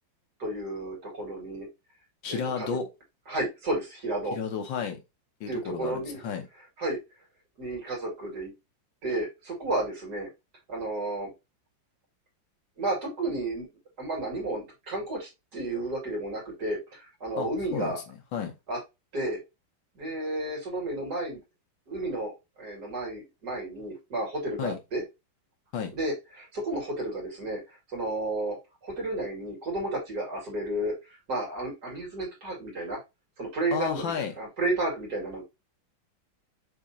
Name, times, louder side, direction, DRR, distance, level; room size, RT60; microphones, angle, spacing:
voice 1, 0.4-1.7 2.3-2.8 3.3-4.4 5.5-6.2 6.8-7.0 7.6-8.5 9.0-10.3 10.7-11.3 12.8-13.7 14.0-18.0 18.7-18.8 19.1-19.4 20.0-21.4 21.9-22.3 22.6-25.0 25.9-27.6 27.9-28.6 28.8-30.9 31.3-33.0 33.4-35.4, right 2 dB, 55° right, 2.6 m, -32 dB
voice 2, 2.2-2.9 4.3-5.0 5.4-6.5 17.4-18.0 18.3-18.5 24.6-24.8 25.7-25.9 33.7-34.3, left 6 dB, 75° left, 1.7 m, -32 dB
6.2 x 3.0 x 2.7 m
omnidirectional pair, 2.1 m